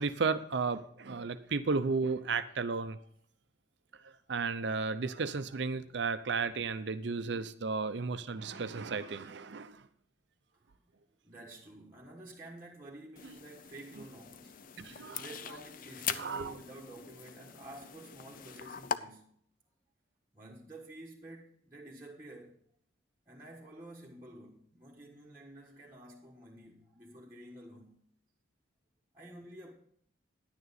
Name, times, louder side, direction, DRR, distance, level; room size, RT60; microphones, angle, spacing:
voice 1, 0.0-3.0 4.0-9.9 14.8-15.2 16.2-16.5, right 4 dB, 60° right, 0.6 m, -34 dB
voice 2, 11.2-19.3 20.3-22.6 23.2-28.0 29.1-29.7, right 1 dB, 15° right, 1.4 m, -51 dB
sound 1, 13.2-19.0, left 7 dB, 45° left, 0.5 m, -42 dB
10.5 x 9.6 x 4.1 m
head